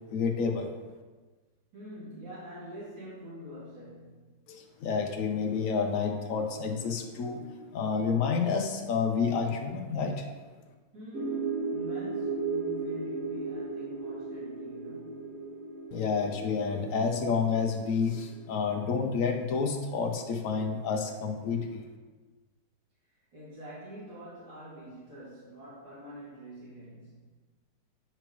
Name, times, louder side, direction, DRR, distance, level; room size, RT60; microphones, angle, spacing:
voice 1, 0.1-0.7 4.5-10.3 15.9-21.8, left 5 dB, 70° left, 4 dB, 0.8 m, -29 dB
voice 2, 1.7-4.4 10.9-15.5 23.3-27.3, equal, 80° right, -10 dB, 3.2 m, -46 dB
sound 1, 11.1-18.8, right 4 dB, 35° right, 0.9 m, -36 dB
9.0 x 4.9 x 3.0 m, 1.3 s
omnidirectional pair, 2.0 m